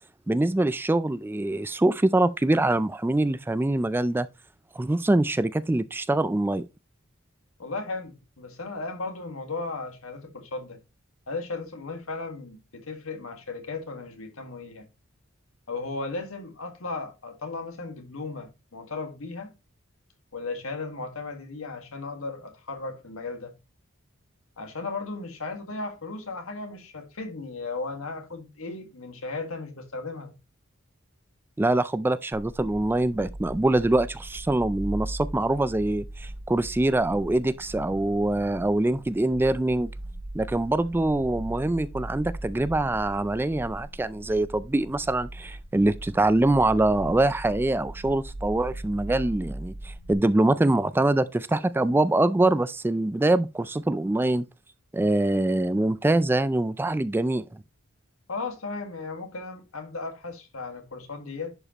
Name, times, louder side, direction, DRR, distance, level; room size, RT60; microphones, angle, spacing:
voice 1, 0.3-4.3 4.8-6.7 31.6-39.9 40.3-54.4 54.9-57.4, right 2 dB, 10° right, 0.3 m, -24 dB
voice 2, 7.6-10.8 11.3-14.9 15.7-19.5 20.3-23.5 24.6-30.3 58.3-61.5, left 3 dB, 85° left, 1.7 m, -36 dB
sound 1, 32.4-50.1, right 1 dB, 80° right, 1.2 m, -39 dB
11.0 x 5.0 x 2.9 m
head